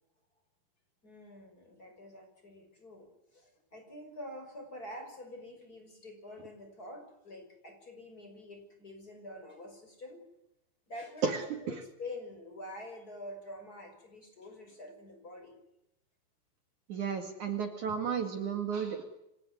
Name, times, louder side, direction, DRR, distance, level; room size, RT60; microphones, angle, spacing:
voice 1, 1.0-10.2 10.9-15.6 18.0-18.1, left 1 dB, 20° left, 5 dB, 6.1 m, -47 dB
voice 2, 16.9-19.1, right 6 dB, 55° right, 6 dB, 3.3 m, -33 dB
25.0 x 18.0 x 9.7 m, 0.86 s
omnidirectional pair, 4.4 m